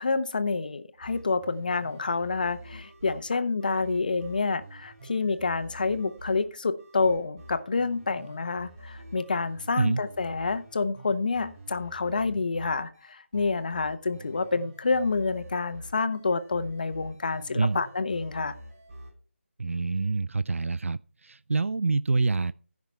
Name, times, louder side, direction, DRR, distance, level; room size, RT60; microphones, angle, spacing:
voice 1, 0.0-18.5, left 4 dB, 40° left, 1.0 m, -28 dB
sound 1, 0.9-19.1, right 1 dB, 25° right, 7.0 m, -48 dB
voice 2, 19.6-22.5, right 3 dB, 75° right, 0.4 m, -26 dB
15.0 x 5.9 x 4.5 m
figure-of-eight pair, 170°, 7 cm